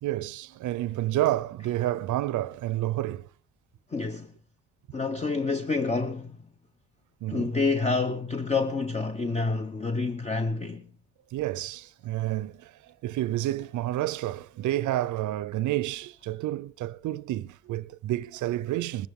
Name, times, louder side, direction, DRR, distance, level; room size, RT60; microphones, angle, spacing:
voice 1, 0.0-3.3 7.2-7.5 11.3-12.7 13.0-19.1, right 14 dB, 75° right, 0.6 m, -29 dB
voice 2, 3.9-4.3 4.9-6.5 7.3-10.9, left 3 dB, 20° left, 0.9 m, -28 dB
20.5 x 14.5 x 3.6 m
cardioid pair, 90°, 30 cm